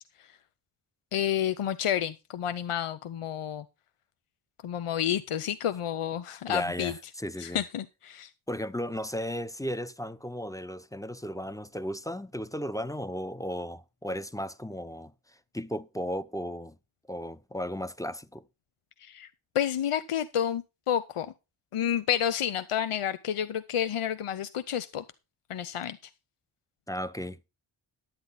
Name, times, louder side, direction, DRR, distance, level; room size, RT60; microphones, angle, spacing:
voice 1, 1.1-3.6 4.6-6.9 7.4-8.3 19.0-19.3 19.5-21.3 21.7-25.0 25.5-26.0, left 10 dB, 90° left, 0.7 m, -30 dB
voice 2, 6.5-7.6 8.5-15.1 15.5-16.8 17.1-18.4 26.9-27.5, equal, 5° left, 0.6 m, -35 dB
10.5 x 9.4 x 4.0 m
wide cardioid pair, 85°, 50 cm